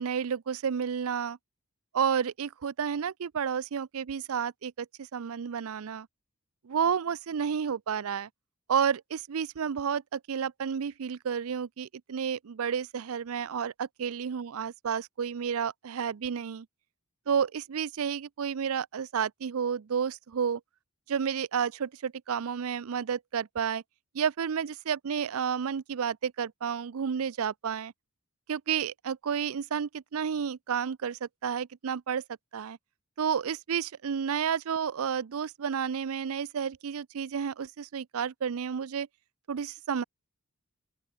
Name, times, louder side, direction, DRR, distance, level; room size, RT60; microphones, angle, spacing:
voice 1, 0.0-1.4 1.9-6.1 6.6-8.3 8.7-16.7 17.3-20.6 21.1-23.8 24.1-27.9 28.5-32.2 32.5-32.8 33.2-39.1 39.5-40.0, right 7 dB, 70° right, 0.5 m, -31 dB
open air
head